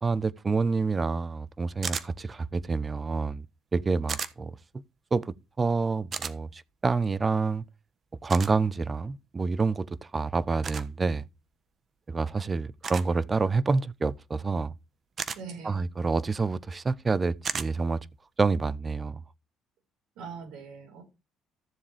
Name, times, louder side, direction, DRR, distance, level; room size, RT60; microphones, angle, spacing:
voice 1, 0.0-3.4 3.7-4.6 5.1-7.6 8.2-11.2 12.1-14.7 15.6-18.0 18.4-19.2, right 4 dB, 30° right, 0.7 m, -28 dB
sound 1, 1.8-2.1 4.1-4.3 6.1-6.3 8.3-8.5 10.6-10.9 12.8-13.1 15.2-15.4 17.4-17.7, right 6 dB, 45° right, 1.2 m, -33 dB
voice 2, 15.3-15.8 20.1-21.0, right 5 dB, 75° right, 4.8 m, -42 dB
14.0 x 7.4 x 3.5 m
supercardioid pair, 65°, 0 cm